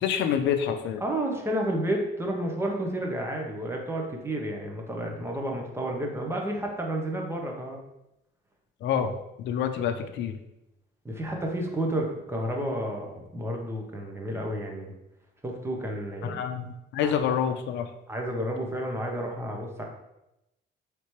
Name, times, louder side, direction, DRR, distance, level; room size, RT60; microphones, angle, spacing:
voice 1, 0.0-1.0 8.8-9.2 9.4-10.4 16.2-16.6 16.9-17.9, left 8 dB, 75° left, 7 dB, 0.5 m, -27 dB
voice 2, 1.0-7.8 11.0-14.9 15.4-16.4 17.0-17.1 18.1-19.8, right 1 dB, 15° right, 1 dB, 0.7 m, -31 dB
4.4 x 3.3 x 3.1 m, 0.89 s
cardioid pair, 140°, 19 cm